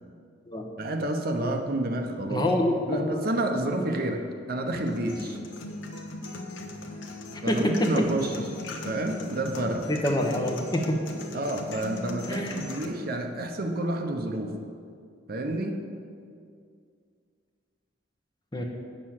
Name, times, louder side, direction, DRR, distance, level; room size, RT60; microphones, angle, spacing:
voice 1, 0.8-2.5 2.9-5.4 7.4-8.4 8.8-9.9 11.3-14.6 15.3-15.8, right 1 dB, 50° right, 4 dB, 0.8 m, -29 dB
voice 2, 2.3-3.1 7.3-8.1 9.9-11.0 12.3-12.7 18.5-18.6, left 1 dB, 20° left, 2 dB, 0.9 m, -26 dB
sound 1, 4.9-12.9, left 1 dB, 75° left, 1.1 m, -38 dB
9.1 x 6.5 x 7.4 m, 2.3 s
head